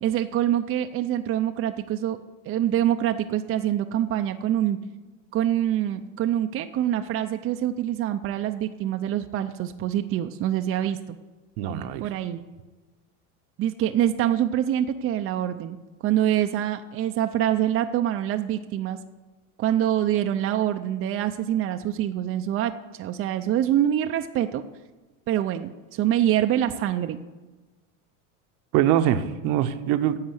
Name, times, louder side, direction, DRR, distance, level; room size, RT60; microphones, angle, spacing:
voice 1, 0.0-2.2 2.4-4.8 5.3-11.2 12.0-12.4 13.6-15.8 16.0-19.0 19.6-24.6 25.3-27.2, right 11 dB, 35° right, 6 dB, 0.5 m, -25 dB
voice 2, 11.6-12.1 28.7-30.2, right 11 dB, 60° right, 10 dB, 0.9 m, -23 dB
10.5 x 7.3 x 8.0 m, 1.2 s
supercardioid pair, 135°, 39 cm